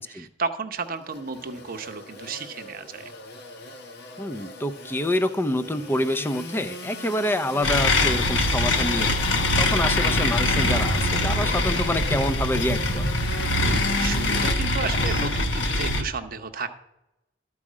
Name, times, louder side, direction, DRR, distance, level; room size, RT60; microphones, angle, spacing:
voice 1, 0.0-3.1 13.6-16.7, right 4 dB, 50° right, 8 dB, 0.8 m, -33 dB
Engine / Sawing, 0.7-14.5, left 1 dB, 60° left, 1.3 m, -37 dB
voice 2, 4.2-9.2 9.6-13.1, left 1 dB, 10° left, 9 dB, 0.5 m, -27 dB
sound 1, 7.6-16.0, left 2 dB, 80° left, 1.2 m, -23 dB
12.5 x 4.8 x 7.3 m, 0.90 s
head